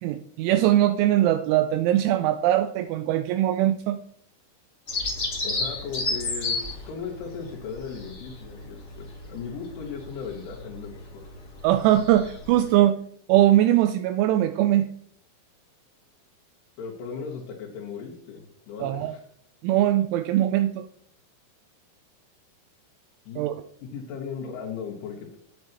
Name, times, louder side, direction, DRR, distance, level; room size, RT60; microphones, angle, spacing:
voice 1, 0.0-4.0 11.6-13.0 13.3-14.9 18.8-19.1 19.6-20.9 23.4-23.6, right 13 dB, 85° right, 8 dB, 2.8 m, -21 dB
Bird vocalization bird call bird song, 4.9-12.7, left 3 dB, 60° left, 0.8 m, -33 dB
voice 2, 5.4-6.6 6.9-11.2 16.8-19.2 23.3-23.4 23.8-25.4, left 6 dB, 75° left, -4 dB, 4.0 m, -37 dB
10.0 x 9.5 x 3.0 m, 0.66 s
omnidirectional pair, 5.6 m